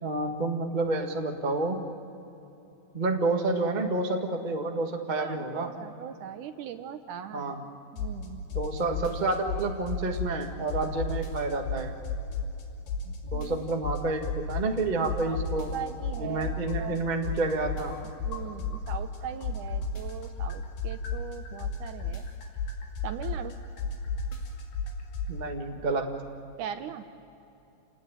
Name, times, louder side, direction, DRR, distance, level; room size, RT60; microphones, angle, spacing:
voice 1, 0.0-1.8 2.9-5.7 7.3-7.6 8.5-12.0 13.3-15.7 16.2-17.9 25.3-26.1, right 2 dB, 35° right, 3 dB, 0.7 m, -29 dB
voice 2, 5.2-7.6 7.9-8.4 13.3-13.7 15.2-15.4 15.7-17.1 18.2-22.3 23.0-23.6 26.6-27.1, right 9 dB, 70° right, 9 dB, 2.2 m, -40 dB
sound 1, 8.0-8.2 8.5-10.4 10.7-12.6 12.9-14.8 15.0-19.2 19.4-25.3, left 4 dB, 70° left, 4.1 m, -32 dB
28.5 x 19.0 x 9.0 m, 2.9 s
omnidirectional pair, 4.1 m